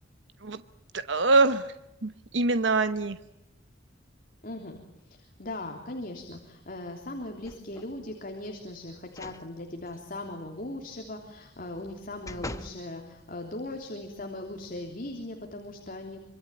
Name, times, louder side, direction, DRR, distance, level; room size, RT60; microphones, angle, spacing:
voice 1, 0.9-1.7 2.0-3.2, right 3 dB, 65° right, 11 dB, 1.0 m, -24 dB
voice 2, 4.4-4.8 5.1-16.2, left 1 dB, 45° left, 3 dB, 3.4 m, -39 dB
sound 1, 7.4-8.0 9.1-9.4 9.9-10.0 11.6-12.8 13.4-13.5, left 1 dB, 15° left, 1.2 m, -42 dB
26.0 x 25.0 x 9.1 m, 0.86 s
head